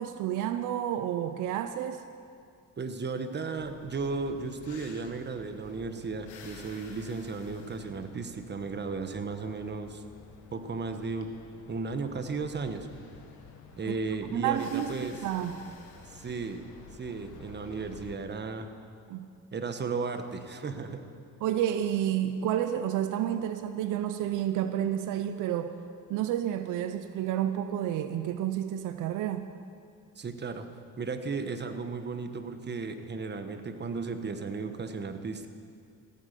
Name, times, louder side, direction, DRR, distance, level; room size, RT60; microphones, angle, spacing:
voice 1, 0.0-2.0 13.9-14.0 14.3-15.6 19.1-19.3 21.4-25.8 26.1-29.5, right 11 dB, 90° right, 9 dB, 0.6 m, -30 dB
voice 2, 2.8-10.0 10.5-11.3 11.7-12.9 13.8-15.2 16.1-16.6 17.0-18.7 19.5-21.0 30.2-30.7 31.0-35.5, right 4 dB, 35° right, 8 dB, 1.2 m, -35 dB
sound 1, 3.6-18.1, left 4 dB, 85° left, 1.7 m, -51 dB
15.5 x 9.4 x 6.7 m, 2.3 s
cardioid pair, 90°, 30 cm